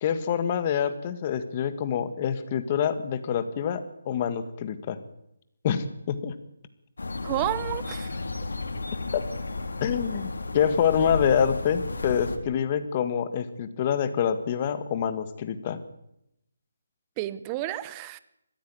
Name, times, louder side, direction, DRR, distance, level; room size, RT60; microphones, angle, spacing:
voice 1, 0.0-5.0 5.6-6.4 9.8-15.8, left 8 dB, 25° left, 11 dB, 1.7 m, -26 dB
sound 1, 7.0-12.4, left 3 dB, 85° left, 3.4 m, -33 dB
voice 2, 7.2-8.2 17.2-18.2, right 14 dB, 20° right, 16 dB, 0.9 m, -31 dB
21.0 x 15.0 x 9.8 m, 0.80 s
hypercardioid pair, 165°, 0 cm